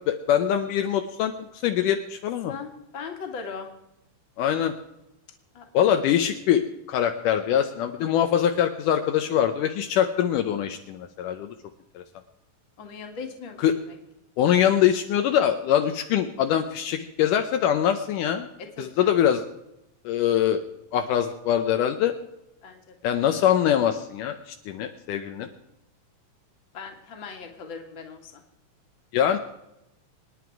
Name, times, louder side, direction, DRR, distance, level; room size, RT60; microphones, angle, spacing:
voice 1, 0.1-1.3 1.6-2.5 4.4-4.7 5.7-11.5 12.0-12.1 13.6-13.7 14.4-18.5 18.8-19.4 20.1-20.6 20.9-22.1 23.0-25.5 29.1-29.4, left 10 dB, 75° left, 6 dB, 2.2 m, -23 dB
voice 2, 2.5-3.7 5.5-6.1 12.8-14.0 18.8-19.3 22.6-22.9 26.7-28.4, left 5 dB, 40° left, 3 dB, 2.3 m, -39 dB
27.0 x 9.9 x 4.7 m, 0.88 s
omnidirectional pair, 3.9 m